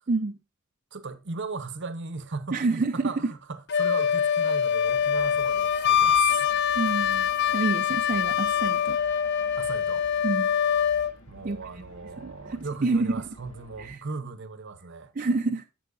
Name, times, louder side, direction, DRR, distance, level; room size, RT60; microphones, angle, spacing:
voice 1, 0.9-6.5 9.6-10.1 11.3-15.1, right 4 dB, 60° right, 0.8 m, -37 dB
voice 2, 2.5-3.1 6.8-9.0 10.2-10.5 11.4-11.6 12.2-13.2 13.8-14.0 15.2-15.6, right 3 dB, 40° right, 0.5 m, -28 dB
Wind instrument woodwind instrument, 3.7-11.1, left 8 dB, 55° left, 0.5 m, -24 dB
sound 1, 4.8-13.9, equal, 75° left, 1.5 m, -51 dB
11.0 x 7.7 x 2.5 m
head